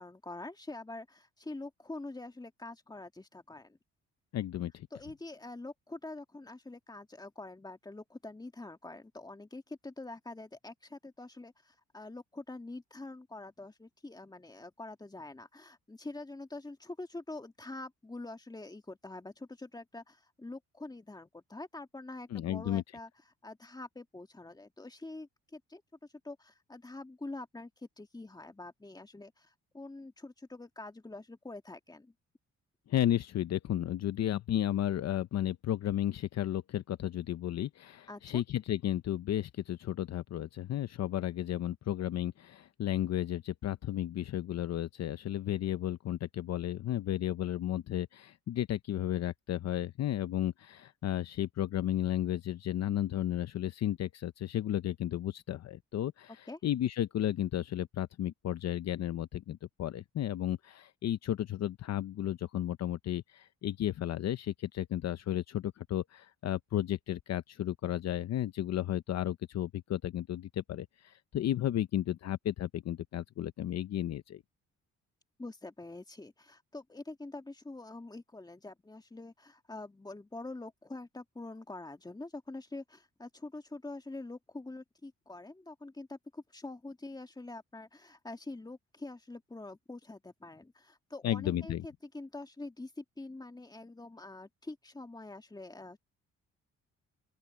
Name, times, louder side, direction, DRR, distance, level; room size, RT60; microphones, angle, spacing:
voice 1, 0.0-3.8 4.9-23.1 23.4-25.8 26.2-32.1 38.1-38.4 56.5-56.6 75.4-96.0, left 2 dB, 15° left, 2.0 m, -45 dB
voice 2, 4.3-4.9 22.3-22.8 32.9-74.4 91.2-91.9, left 12 dB, 60° left, 0.8 m, -33 dB
open air
cardioid pair, 90°, 30 cm